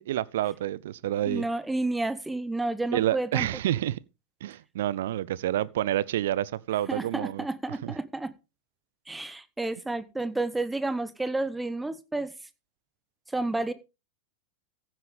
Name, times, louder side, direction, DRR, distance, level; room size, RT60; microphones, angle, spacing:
voice 1, 0.0-1.4 2.9-4.0 4.4-7.5 7.8-7.9, right 13 dB, 55° right, 0.6 m, -28 dB
voice 2, 1.2-3.5 6.9-8.3 9.1-12.3 13.3-13.7, right 2 dB, 5° right, 1.2 m, -30 dB
15.0 x 9.3 x 3.5 m
figure-of-eight pair, 90°, 0 cm